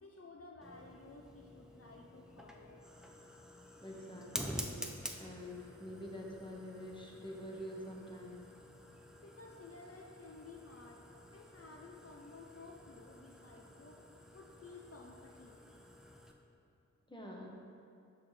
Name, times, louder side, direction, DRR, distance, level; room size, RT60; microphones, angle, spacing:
voice 1, 0.0-2.8 9.2-11.0 11.3-14.0 14.3-15.6, left 3 dB, 45° left, 0 dB, 0.5 m, -54 dB
Fire, 0.6-16.3, equal, ahead, 0.5 m, -49 dB
voice 2, 3.8-4.8 5.2-8.4 17.1-17.5, equal, 15° left, -2 dB, 1.0 m, -46 dB
6.2 x 5.9 x 3.3 m, 2.6 s
wide cardioid pair, 55°, 32 cm